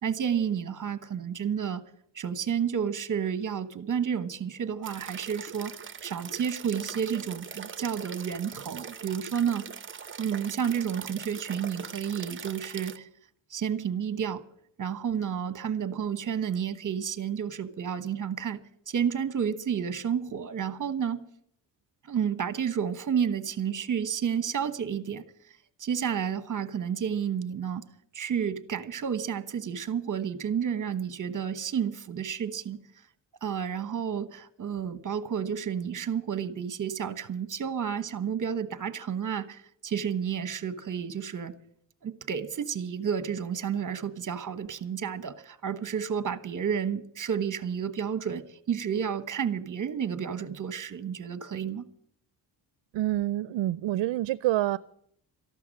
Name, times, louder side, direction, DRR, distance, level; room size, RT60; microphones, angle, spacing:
voice 1, 0.0-1.8 2.1-9.7 10.2-13.1 13.5-14.4 14.8-21.3 22.0-25.3 25.8-27.8 28.1-32.8 33.4-41.5 42.0-51.9, right 7 dB, 40° right, 1.2 m, -31 dB
sound 1, 4.8-13.0, right 6 dB, 25° right, 0.8 m, -42 dB
voice 2, 52.9-54.8, right 15 dB, 70° right, 0.5 m, -27 dB
13.5 x 11.5 x 7.5 m
cardioid pair, 90°, 45 cm